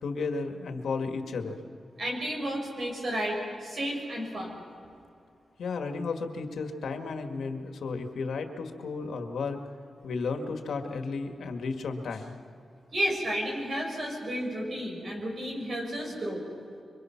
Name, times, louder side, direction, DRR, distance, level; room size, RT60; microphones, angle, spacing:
voice 1, 0.0-1.7 5.6-9.6 10.0-12.3, left 4 dB, 90° left, 5 dB, 1.9 m, -33 dB
voice 2, 2.0-4.6 12.9-16.4, equal, 45° right, 0 dB, 6.0 m, -32 dB
26.0 x 24.5 x 5.9 m, 2.5 s
wide cardioid pair, 145°, 0 cm